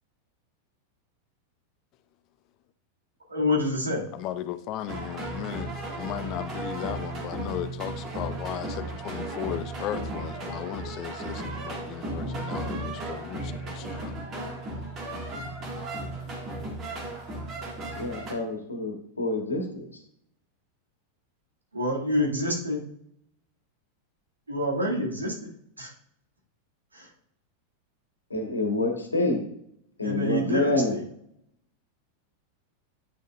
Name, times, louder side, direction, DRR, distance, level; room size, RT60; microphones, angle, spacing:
voice 1, 3.3-4.0 21.7-22.8 24.5-25.3 25.8-25.9 26.9-27.1 30.0-31.0, left 1 dB, 75° right, 2.3 m, -27 dB
voice 2, 4.1-14.2, left 11 dB, 40° left, 0.5 m, -36 dB
sound 1, 4.9-18.3, right 2 dB, 30° right, 1.9 m, -35 dB
voice 3, 18.0-19.8 28.3-29.5 30.0-30.9, left 2 dB, 80° left, 1.5 m, -27 dB
9.2 x 6.4 x 2.5 m
figure-of-eight pair, 90°, 0 cm